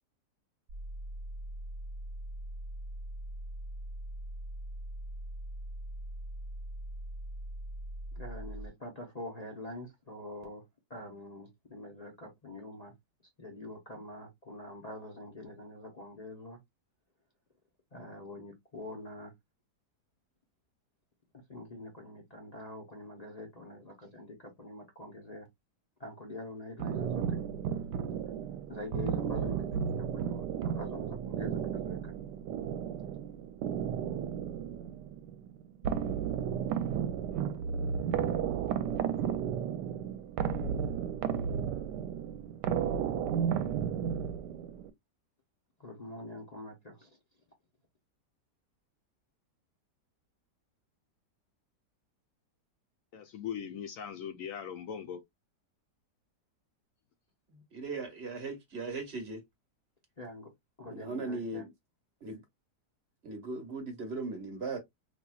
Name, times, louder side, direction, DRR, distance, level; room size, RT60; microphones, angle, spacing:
sound 1, 0.7-8.7, right 1 dB, 60° right, 1.2 m, -41 dB
voice 1, 8.1-10.6 10.9-12.9 13.4-16.6 17.9-19.3 21.5-25.5 26.0-27.4 28.7-32.1 45.8-47.1 60.2-60.5 60.8-61.6, left 1 dB, 40° left, 0.6 m, -45 dB
sound 2, 26.8-44.9, right 8 dB, 80° right, 1.2 m, -33 dB
voice 2, 53.1-55.2, left 8 dB, 70° left, 0.8 m, -40 dB
voice 3, 57.5-59.4 60.8-61.7 62.2-62.4 63.2-64.8, right 3 dB, 40° right, 1.3 m, -38 dB
4.2 x 2.8 x 2.3 m
omnidirectional pair, 1.8 m